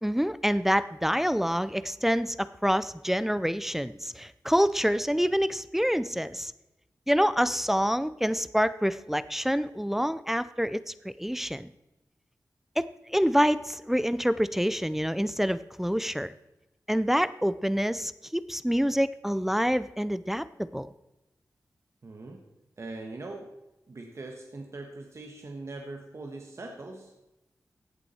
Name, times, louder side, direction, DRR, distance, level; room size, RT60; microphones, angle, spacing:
voice 1, 0.0-6.5 7.1-11.7 12.8-16.3 16.9-20.9, equal, 5° right, 15 dB, 0.4 m, -27 dB
voice 2, 22.0-22.4 22.8-23.5 23.9-27.1, right 2 dB, 45° right, 2 dB, 1.3 m, -41 dB
15.0 x 8.4 x 4.3 m, 0.97 s
wide cardioid pair, 130°, 6 cm